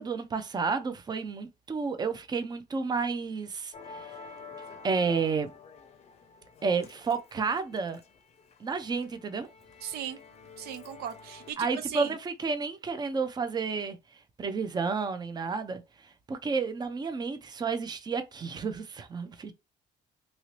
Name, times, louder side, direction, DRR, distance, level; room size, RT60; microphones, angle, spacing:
voice 1, 0.0-4.1 4.8-5.5 6.6-8.0 8.6-9.5 11.6-14.0 14.4-15.8 16.3-19.5, right 5 dB, 25° right, 0.6 m, -31 dB
Musical instrument, 3.7-11.5, left 4 dB, 40° left, 0.6 m, -49 dB
voice 2, 9.8-10.2 10.6-12.1, right 10 dB, 70° right, 0.5 m, -37 dB
2.9 x 2.7 x 3.1 m
cardioid pair, 110°, 17 cm